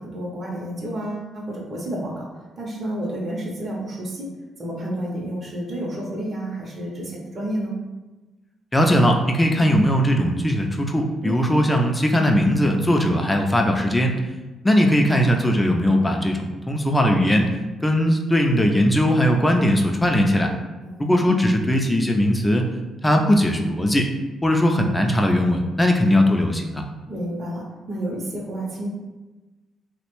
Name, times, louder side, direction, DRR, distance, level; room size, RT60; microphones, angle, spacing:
voice 1, 0.0-2.3 2.6-4.3 4.6-7.7 11.2-11.4 20.8-21.1 27.1-28.9, right 1 dB, 35° right, -3 dB, 0.6 m, -30 dB
voice 2, 8.7-14.2 14.6-17.5 17.8-20.5 21.0-22.7 23.0-24.1 24.4-26.8, equal, 15° left, 3 dB, 0.4 m, -19 dB
2.8 x 2.1 x 2.9 m, 1.2 s
cardioid pair, 90°, 0 cm